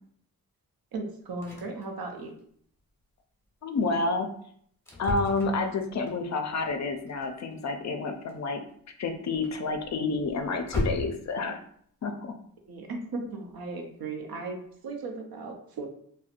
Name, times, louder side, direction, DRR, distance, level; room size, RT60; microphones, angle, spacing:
voice 1, 0.9-2.3 12.7-14.6 14.8-15.9, right 3 dB, 70° right, 3 dB, 0.7 m, -36 dB
sound 1, 1.3-1.9 2.2-2.4 2.8-3.0 3.5-3.6 4.2-4.3 4.9-11.4 13.2-13.7 14.2-14.3 14.7-14.8, left 1 dB, 5° left, 0.9 m, -37 dB
voice 2, 3.6-4.3 5.0-8.6 9.0-11.6 12.0-12.3, left 3 dB, 50° left, 6 dB, 0.4 m, -29 dB
4.2 x 2.2 x 2.5 m, 0.64 s
wide cardioid pair, 110°, 37 cm